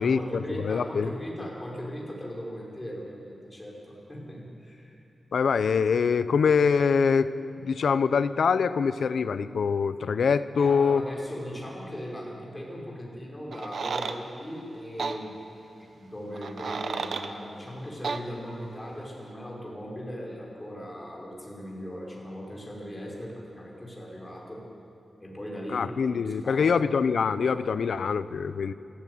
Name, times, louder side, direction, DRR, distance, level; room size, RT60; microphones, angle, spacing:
voice 1, 0.0-5.0 10.6-15.4 16.0-24.6 25.2-26.9, equal, 15° left, -3 dB, 5.4 m, -38 dB
voice 2, 0.6-1.1 5.3-7.3 7.6-11.0 25.7-28.7, left 6 dB, 80° left, 13 dB, 0.8 m, -24 dB
sound 1, 13.5-14.2 15.0-15.2 16.3-17.3 18.0-18.2, right 5 dB, 70° right, 1.1 m, -32 dB
27.0 x 14.0 x 9.5 m, 2.7 s
wide cardioid pair, 130°, 0 cm